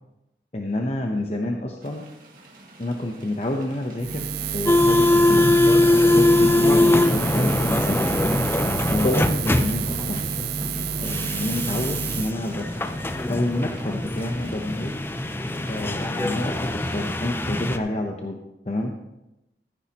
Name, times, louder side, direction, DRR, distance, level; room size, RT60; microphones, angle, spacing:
voice 1, 0.5-2.0 2.8-4.3 4.5-5.4 6.0-8.0 8.9-10.3 11.0-12.9 13.3-15.0 15.7-18.4 18.7-18.9, left 1 dB, 35° left, 2 dB, 0.8 m, -28 dB
sound 1, 1.8-17.4, right 1 dB, 50° right, 1.9 m, -43 dB
Buzz, 4.0-12.3, right 7 dB, 65° right, 0.6 m, -30 dB
sound 2, 4.7-17.8, left 1 dB, 10° left, 0.4 m, -22 dB
14.5 x 9.7 x 3.0 m, 0.92 s
head